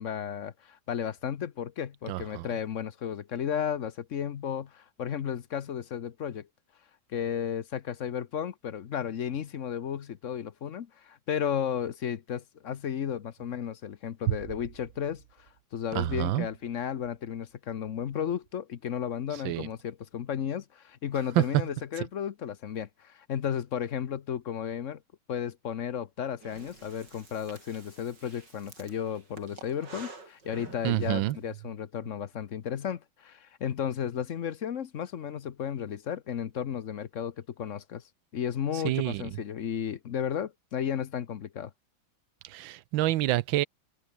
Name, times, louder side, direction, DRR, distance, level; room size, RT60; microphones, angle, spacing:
voice 1, 0.0-6.5 7.1-25.0 25.3-38.0 38.3-41.7, left 8 dB, 50° left, 1.0 m, -34 dB
voice 2, 2.1-2.4 16.0-16.5 19.4-19.7 30.8-31.3 38.8-39.2 42.5-43.7, right 15 dB, 80° right, 1.4 m, -28 dB
Breathing, 26.4-31.4, right 3 dB, 60° right, 5.3 m, -49 dB
omnidirectional pair, 2.1 m